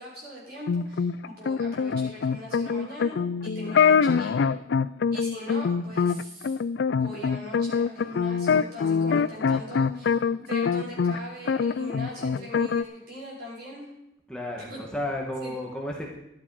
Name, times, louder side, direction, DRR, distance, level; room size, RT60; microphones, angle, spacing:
voice 1, 0.0-4.5 5.1-6.6 6.9-13.9 14.6-14.8 15.4-15.5, equal, 55° right, -4 dB, 6.0 m, -41 dB
sound 1, 0.7-11.2 11.5-12.8, left 6 dB, 60° left, 0.4 m, -24 dB
voice 2, 14.3-16.1, left 1 dB, 5° left, -2 dB, 1.7 m, -32 dB
13.5 x 11.5 x 4.9 m, 0.84 s
head